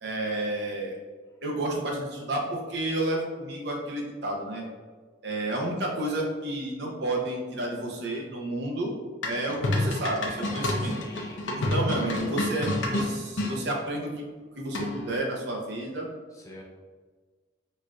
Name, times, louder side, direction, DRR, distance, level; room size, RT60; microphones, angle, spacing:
voice 1, 0.0-1.0 1.4-4.7 5.2-9.0 9.2-11.0 11.5-14.3 14.6-16.1, right 1 dB, 60° right, -1 dB, 0.6 m, -31 dB
sound 1, 9.2-13.5 14.7-15.2, left 1 dB, 75° left, 0.5 m, -29 dB
voice 2, 10.7-12.4 16.4-16.6, left 1 dB, 15° left, -1 dB, 0.3 m, -43 dB
4.1 x 2.5 x 2.3 m, 1.4 s
head